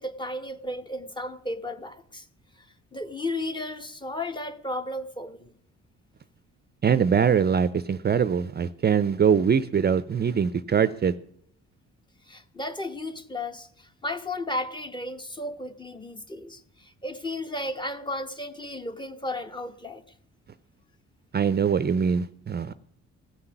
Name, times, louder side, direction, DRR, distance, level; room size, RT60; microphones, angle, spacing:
voice 1, 0.0-2.3 2.6-2.7 2.9-5.5 12.3-20.0, left 1 dB, 15° left, 1.2 m, -34 dB
voice 2, 6.8-11.1 21.3-22.7, right 7 dB, 35° right, 0.6 m, -23 dB
16.5 x 5.9 x 9.9 m
cardioid pair, 90°, 30 cm